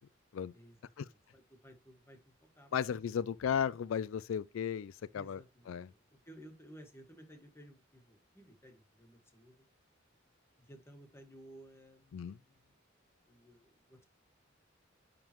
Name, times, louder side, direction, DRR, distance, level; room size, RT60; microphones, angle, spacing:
voice 1, 0.5-2.9 5.1-6.0 6.2-9.7 10.6-12.8 13.3-14.0, right 1 dB, 15° left, 1.6 m, -57 dB
voice 2, 2.7-5.4 5.7-5.9 12.1-12.4, left 8 dB, 75° left, 0.4 m, -35 dB
10.0 x 3.7 x 3.0 m
head